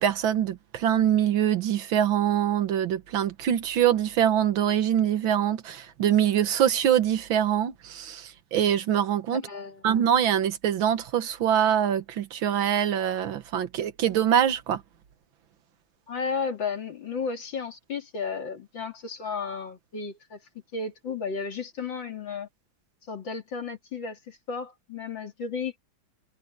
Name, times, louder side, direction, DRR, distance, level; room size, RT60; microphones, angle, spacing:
voice 1, 0.0-9.4 9.8-14.8, right 10 dB, 85° right, 1.9 m, -24 dB
voice 2, 9.3-9.8 16.1-20.4 20.7-22.5 23.1-25.8, left 5 dB, 70° left, 3.5 m, -33 dB
omnidirectional pair, 2.1 m